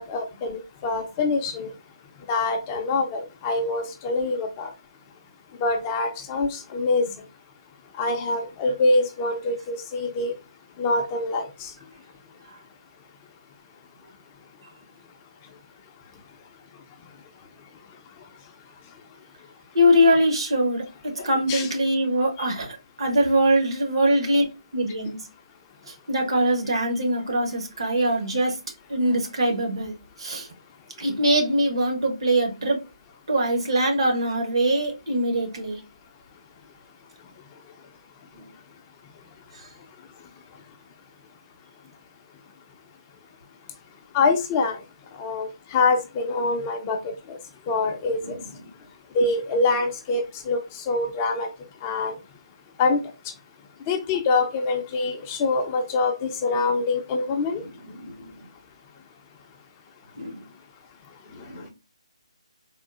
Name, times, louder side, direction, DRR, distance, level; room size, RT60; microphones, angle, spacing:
voice 1, 0.0-1.7 2.3-4.7 5.6-7.1 8.0-10.3 10.8-11.7 21.2-21.7 22.4-22.5 44.1-44.8 45.2-47.0 47.3-47.4 47.7-48.2 49.1-51.5 51.8-52.2 52.8-53.0 53.9-57.6, left 3 dB, 20° left, 4 dB, 0.4 m, -25 dB
voice 2, 19.7-24.4 24.7-25.2 26.1-28.5 28.9-29.9 30.2-30.5 31.0-32.8 33.3-35.8 48.2-48.4 57.6-58.1 60.2-60.4 61.3-61.7, equal, 60° right, 3 dB, 1.0 m, -23 dB
3.6 x 2.3 x 2.4 m, 0.27 s
figure-of-eight pair, 150°, 3 cm